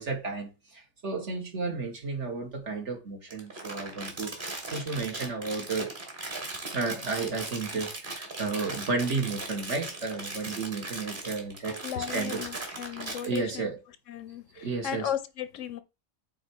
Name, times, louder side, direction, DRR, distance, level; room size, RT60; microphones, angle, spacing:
voice 1, 0.0-5.9 6.7-12.4 13.2-13.8 14.6-15.1, right 4 dB, 60° right, 1.9 m, -33 dB
Crumpling crinkling, 3.3-13.4, right 2 dB, 40° right, 2.0 m, -38 dB
voice 2, 11.8-13.7 14.1-15.8, left 10 dB, 70° left, 1.0 m, -35 dB
8.5 x 3.5 x 4.6 m
omnidirectional pair, 1.4 m